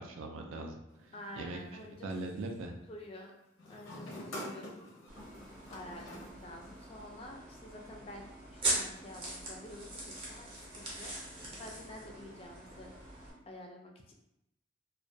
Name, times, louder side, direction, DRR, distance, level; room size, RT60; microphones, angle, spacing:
voice 1, 0.0-1.6 1.9-2.7, right 2 dB, 90° right, 4 dB, 0.4 m, -41 dB
sound 1, 0.9-2.2 3.6-7.1, left 1 dB, 80° left, 0.5 m, -47 dB
voice 2, 1.1-2.1 2.9-3.3 3.7-4.7 5.7-8.2 8.5-12.9 13.5-14.1, left 1 dB, 30° left, 1 dB, 0.3 m, -49 dB
sound 2, 5.1-13.3, right 2 dB, 25° right, 0.6 m, -41 dB
2.2 x 2.1 x 2.6 m, 0.84 s
head